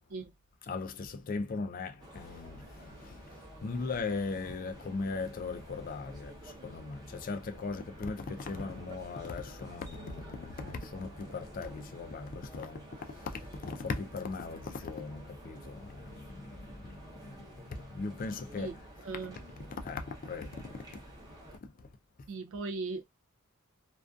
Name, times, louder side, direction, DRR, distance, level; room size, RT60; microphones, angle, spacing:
voice 1, 0.6-18.8 19.8-21.0 21.6-21.9, left 4 dB, 40° left, 0.3 m, -39 dB
sound 1, 2.0-21.6, right 1 dB, 20° right, 0.6 m, -50 dB
voice 2, 19.0-19.4 22.3-23.0, right 3 dB, 60° right, 0.3 m, -37 dB
2.5 x 2.3 x 2.2 m
head